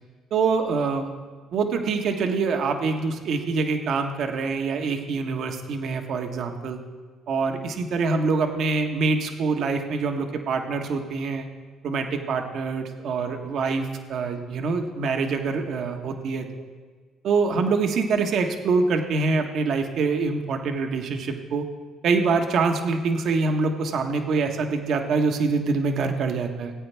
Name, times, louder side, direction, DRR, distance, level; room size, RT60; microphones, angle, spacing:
voice 1, 0.3-1.1 1.5-6.8 7.3-11.5 11.8-16.6 17.2-21.6 22.0-26.7, right 4 dB, 65° right, 5 dB, 1.2 m, -25 dB
17.0 x 8.7 x 3.4 m, 1.5 s
supercardioid pair, 65°, 0 cm